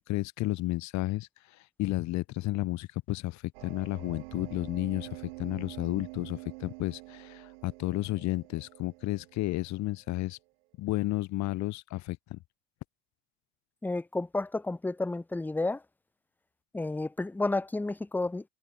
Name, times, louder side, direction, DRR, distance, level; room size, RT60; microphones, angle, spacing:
voice 1, 0.0-10.4 10.8-12.4, left 18 dB, 65° left, 4.0 m, -32 dB
sound 1, 3.5-10.1, right 26 dB, 80° right, 7.0 m, -46 dB
voice 2, 13.8-15.8 16.7-18.4, left 2 dB, 5° left, 0.7 m, -31 dB
supercardioid pair, 85°, 30 cm